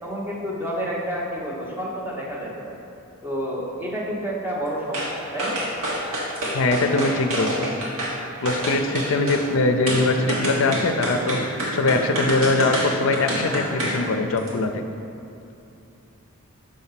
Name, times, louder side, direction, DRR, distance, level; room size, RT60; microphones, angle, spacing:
voice 1, 0.0-2.8 3.2-5.6, equal, 10° right, -5 dB, 1.0 m, -29 dB
sound 1, 4.9-5.1 5.4-8.2 8.5-9.4 9.9-14.0 14.4-14.5, right 1 dB, 65° right, 1.4 m, -27 dB
voice 2, 6.5-7.7 8.4-14.8, left 3 dB, 60° left, 6 dB, 0.5 m, -22 dB
6.5 x 4.3 x 5.8 m, 2.9 s
head